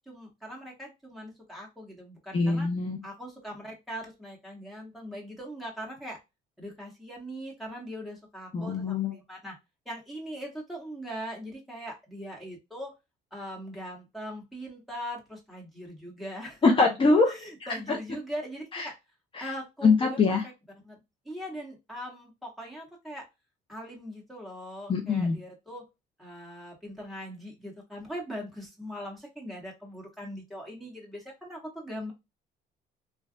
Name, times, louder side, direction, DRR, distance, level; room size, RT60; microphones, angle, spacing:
voice 1, 0.1-2.7 3.0-6.2 6.6-9.6 9.8-12.9 13.3-16.6 17.3-19.0 19.4-20.3 20.8-21.0 21.2-23.3 23.7-25.8 26.2-32.1, equal, ahead, -2 dB, 1.4 m, -41 dB
voice 2, 2.3-3.0 8.5-9.1 16.6-17.3 17.9-18.0 18.7-18.9 19.3-19.5 19.8-20.4 24.9-25.4, left 4 dB, 30° left, 0 dB, 0.7 m, -23 dB
3.3 x 2.4 x 2.3 m, 0.23 s
cardioid pair, 110°, 17 cm